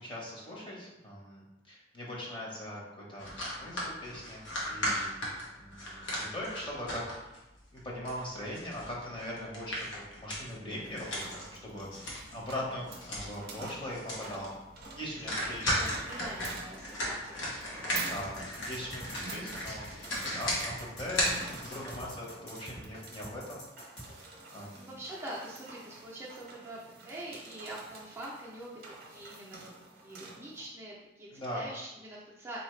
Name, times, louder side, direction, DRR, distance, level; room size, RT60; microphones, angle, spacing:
voice 1, 0.0-2.8 3.1-5.1 5.6-7.4 7.7-9.9 10.2-14.5 14.9-15.8 18.0-23.6 24.0-24.9 31.3-31.6, left 1 dB, 25° left, -4 dB, 0.9 m, -41 dB
sound 1, 3.2-7.4 7.8-12.4 12.7-13.4 13.6-13.7 13.9-14.5 14.8-14.9 15.3-22.0, equal, 85° left, 1.1 m, -35 dB
sound 2, 10.8-30.7, right 3 dB, 50° right, 0.7 m, -48 dB
voice 2, 12.3-12.7 15.2-15.3 15.8-18.1 19.2-19.5 24.7-29.7 30.0-32.6, right 1 dB, 15° right, -6 dB, 0.5 m, -45 dB
sound 3, 18.2-24.1, equal, 65° left, 1.4 m, -46 dB
4.1 x 2.7 x 3.2 m, 0.98 s
head